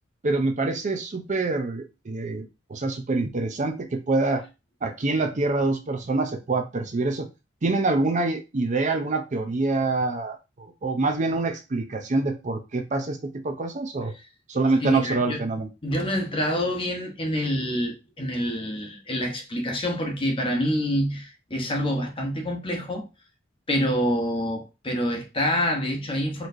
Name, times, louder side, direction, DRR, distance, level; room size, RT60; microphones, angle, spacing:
voice 1, 0.2-4.4 4.8-7.3 7.6-14.1 14.5-15.7, right 3 dB, 40° right, 0.5 m, -26 dB
voice 2, 14.8-15.5 15.8-23.1 23.7-26.5, equal, 30° left, 0.9 m, -27 dB
4.2 x 3.1 x 2.6 m
head